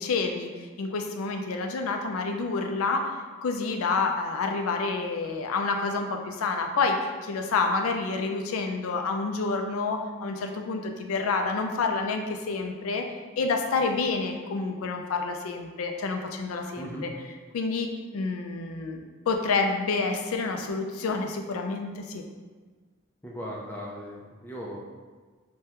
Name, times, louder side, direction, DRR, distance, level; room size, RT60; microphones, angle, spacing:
voice 1, 0.0-3.1 3.4-13.1 13.4-17.1 17.5-17.9 18.1-22.2, left 4 dB, 85° left, 4 dB, 0.4 m, -28 dB
voice 2, 23.2-24.8, equal, 10° left, -4 dB, 0.4 m, -38 dB
3.4 x 2.2 x 2.8 m, 1.4 s
head